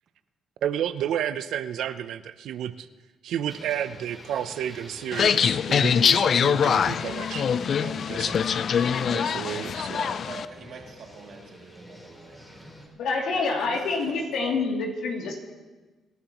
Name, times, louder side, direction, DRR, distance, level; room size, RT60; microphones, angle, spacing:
voice 1, 0.6-2.9 3.2-8.4 8.7-8.8 9.1-10.0, right 10 dB, 80° right, 12 dB, 0.6 m, -31 dB
sound 1, 3.5-12.9, left 1 dB, 20° left, 3.8 m, -48 dB
sound 2, 5.1-10.4, left 7 dB, 55° left, 0.4 m, -23 dB
voice 2, 8.9-9.4 9.9-12.7 13.3-14.7, right 4 dB, 60° right, 0 dB, 2.6 m, -43 dB
voice 3, 12.9-15.4, left 4 dB, 80° left, 0 dB, 2.7 m, -27 dB
26.0 x 11.5 x 3.0 m, 1.2 s
cardioid pair, 90°, 0 cm